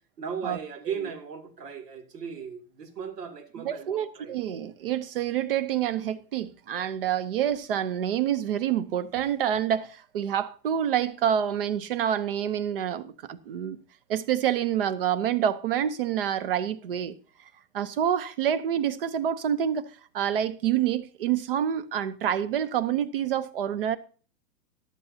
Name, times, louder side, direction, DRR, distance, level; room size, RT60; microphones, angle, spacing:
voice 1, 0.2-4.4, right 6 dB, 75° right, 2.7 m, -37 dB
voice 2, 3.6-13.8 14.1-17.1 17.7-19.8 20.1-24.0, right 9 dB, 35° right, 0.7 m, -27 dB
14.0 x 12.0 x 2.7 m
hypercardioid pair, 170°, 48 cm